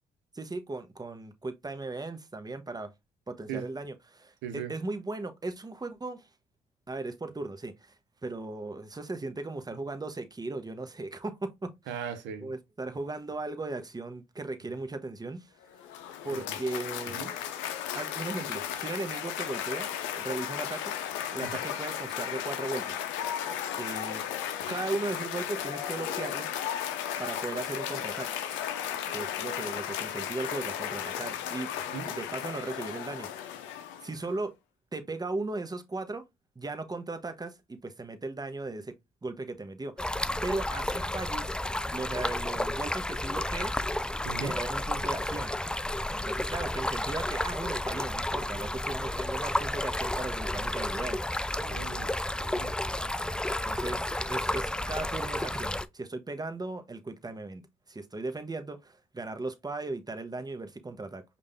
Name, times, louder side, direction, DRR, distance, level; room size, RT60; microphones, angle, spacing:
voice 1, 0.3-2.9 3.3-6.3 6.9-7.9 8.2-12.0 12.4-15.5 16.2-17.2 17.9-20.9 21.3-23.0 23.8-24.2 24.7-26.5 27.2-28.4 29.1-31.7 32.0-33.3 34.0-34.5 34.9-36.2 36.6-38.9 39.2-40.2 40.4-41.5 41.9-43.8 44.4-45.5 46.1-51.5 53.6-57.6 57.9-61.2, right 2 dB, 20° right, 1.0 m, -37 dB
voice 2, 4.4-4.7 11.9-12.5 16.3-16.4 17.1-17.3 31.9-32.1 44.2-44.5 51.5-52.1 52.4-52.8, right 7 dB, 75° right, 0.8 m, -38 dB
Cheering / Applause, 15.6-34.3, left 10 dB, 80° left, 0.6 m, -35 dB
Stream, 40.0-55.9, left 1 dB, 5° left, 0.3 m, -32 dB
5.1 x 2.5 x 3.3 m
hypercardioid pair, 50°, 19 cm